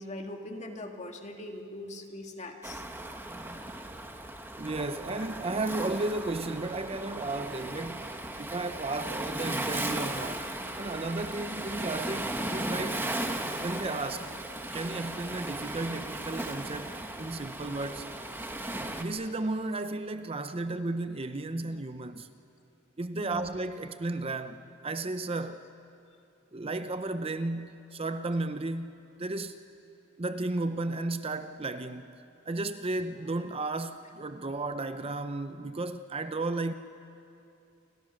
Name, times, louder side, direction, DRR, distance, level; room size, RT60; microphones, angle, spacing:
voice 1, 0.0-2.8 23.1-23.5, left 1 dB, 35° left, 2.1 m, -41 dB
Waves surf, 2.6-19.0, right 1 dB, 10° right, 1.5 m, -36 dB
voice 2, 4.6-8.1 8.4-10.5 10.8-13.1 13.6-14.3 14.7-16.9 17.2-18.1 18.8-22.3 23.0-25.6 26.5-29.6 30.2-32.2 32.5-36.7, right 2 dB, 30° right, 0.6 m, -34 dB
29.5 x 24.0 x 6.5 m
head